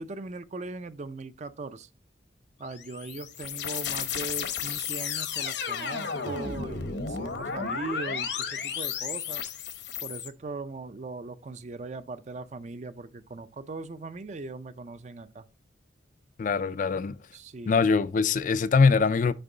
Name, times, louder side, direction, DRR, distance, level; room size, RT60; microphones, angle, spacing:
voice 1, 0.0-1.9 2.6-9.4 10.0-15.4 17.3-17.8, right 3 dB, 35° right, 0.4 m, -39 dB
sound 1, 2.7-10.3, left 7 dB, 60° left, 0.8 m, -33 dB
voice 2, 16.4-17.2 17.7-19.3, left 5 dB, 40° left, 0.3 m, -22 dB
6.7 x 5.2 x 3.8 m
head